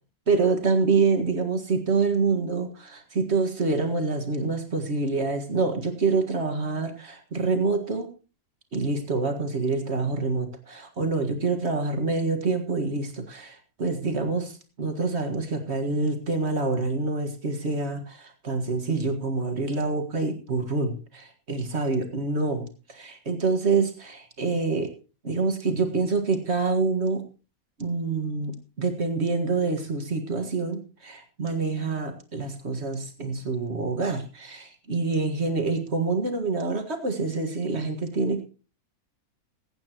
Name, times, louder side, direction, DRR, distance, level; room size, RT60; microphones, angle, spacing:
voice 1, 0.3-8.1 8.7-24.9 25.2-27.2 27.8-38.4, right 4 dB, 50° right, 5 dB, 2.0 m, -26 dB
21.5 x 9.2 x 3.0 m, 0.33 s
omnidirectional pair, 1.5 m